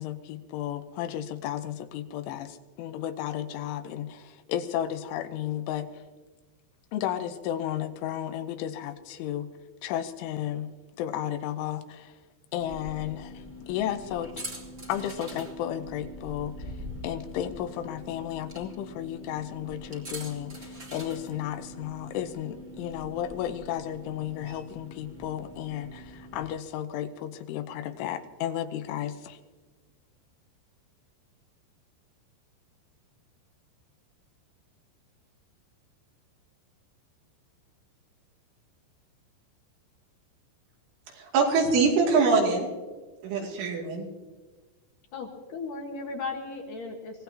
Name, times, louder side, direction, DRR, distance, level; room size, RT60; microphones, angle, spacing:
voice 1, 0.0-5.9 6.9-9.5 9.8-10.7 11.0-12.1 12.5-14.4 14.9-16.7 17.0-29.4, left 11 dB, 90° left, 10 dB, 3.4 m, -33 dB
sound 1, 12.6-26.5, equal, 30° right, 1.1 m, -43 dB
voice 2, 41.1-42.7 43.2-44.1, right 4 dB, 85° right, 0 dB, 5.1 m, -23 dB
voice 3, 45.1-47.2, left 4 dB, 60° left, 1 dB, 2.4 m, -36 dB
24.0 x 18.0 x 2.9 m, 1.3 s
omnidirectional pair, 5.4 m